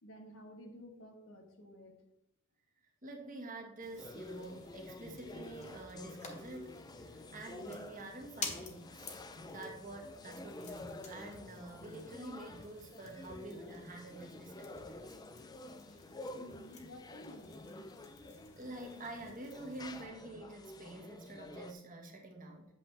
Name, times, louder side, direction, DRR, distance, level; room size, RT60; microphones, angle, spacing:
voice 1, 0.0-2.0 16.3-17.9, left 1 dB, 70° left, 4 dB, 1.3 m, -53 dB
voice 2, 3.0-15.2 18.6-22.7, right 2 dB, 40° right, 2 dB, 1.4 m, -48 dB
sound 1, 3.8-20.1, left 4 dB, 35° left, 1.2 m, -52 dB
sound 2, 4.0-21.7, left 2 dB, 20° left, 0.4 m, -50 dB
8.4 x 7.0 x 3.3 m, 0.84 s
head